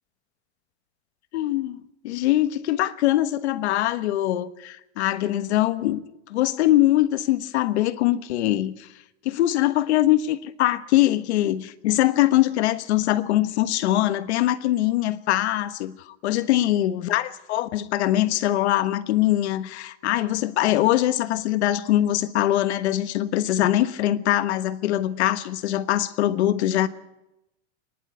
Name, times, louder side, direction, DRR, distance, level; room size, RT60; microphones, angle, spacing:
voice 1, 1.3-6.0 6.3-8.7 9.2-26.9, left 14 dB, 75° left, 1.4 m, -22 dB
24.5 x 11.0 x 9.6 m
supercardioid pair, 155°, 34 cm